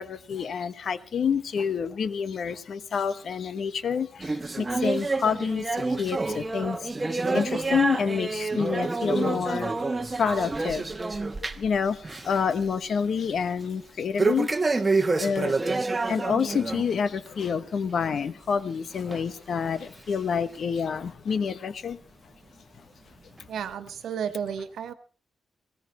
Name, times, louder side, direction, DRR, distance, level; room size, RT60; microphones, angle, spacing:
voice 1, 0.0-14.8 15.2-15.7 16.1-22.0 22.8-22.9 23.4-23.5, left 6 dB, 60° left, 13 dB, 1.1 m, -28 dB
sound 1, 4.2-11.7 12.0-12.4 12.7-12.8 14.2-16.9 17.3-17.4 18.1-18.2 19.1-19.2 20.0-20.1, right 3 dB, 25° right, 1.2 m, -28 dB
voice 2, 23.5-24.9, right 8 dB, 85° right, 10 dB, 1.5 m, -32 dB
18.5 x 16.5 x 4.3 m, 0.37 s
wide cardioid pair, 120°, 0 cm